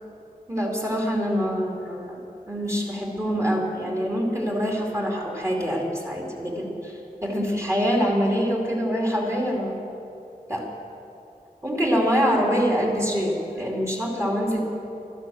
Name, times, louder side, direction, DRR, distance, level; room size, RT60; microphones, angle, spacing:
voice 1, 0.5-6.9 7.2-9.8 10.5-10.7 11.6-14.6, equal, 20° right, -1 dB, 2.7 m, -25 dB
13.0 x 12.0 x 7.7 m, 2.8 s
wide cardioid pair, 65°, 16 cm